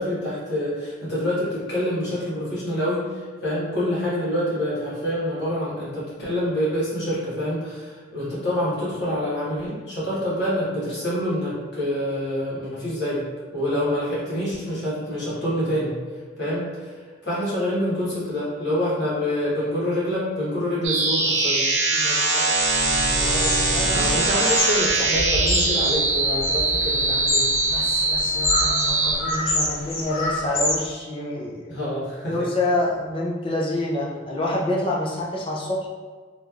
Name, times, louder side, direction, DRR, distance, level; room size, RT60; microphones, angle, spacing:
voice 1, 0.0-13.2 13.5-15.9 16.4-21.6 23.9-27.5 31.7-32.5, equal, 60° left, -9 dB, 1.1 m, -26 dB
sound 1, 20.8-29.2, right 2 dB, 70° right, 0.5 m, -22 dB
voice 2, 21.9-22.4 23.2-24.1 27.7-31.9 32.2-35.9, left 1 dB, 25° left, -3 dB, 0.4 m, -28 dB
sound 2, 22.9-23.0 23.4-30.8, left 2 dB, 85° left, 0.7 m, -27 dB
3.0 x 2.5 x 2.3 m, 1.5 s
head